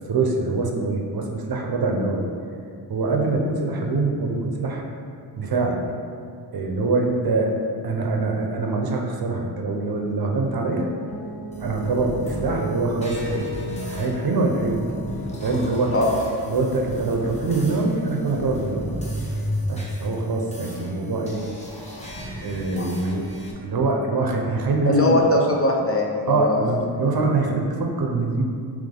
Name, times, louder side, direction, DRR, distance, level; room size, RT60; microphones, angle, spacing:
voice 1, 0.1-2.3 2.9-4.9 5.4-5.8 6.5-7.5 7.8-10.9 11.6-13.5 13.9-14.8 15.4-15.9 16.5-18.9 19.7-21.4 22.4-23.3 23.6-25.2 26.3-28.4, right 3 dB, 50° right, 1 dB, 0.7 m, -24 dB
sound 1, 11.1-17.7, left 2 dB, 80° left, 1.2 m, -37 dB
sound 2, 11.5-23.5, equal, 15° left, 1.0 m, -34 dB
voice 2, 24.9-26.8, left 2 dB, 30° left, -1 dB, 0.6 m, -21 dB
3.4 x 3.1 x 3.7 m, 2.4 s
cardioid pair, 50°, 45 cm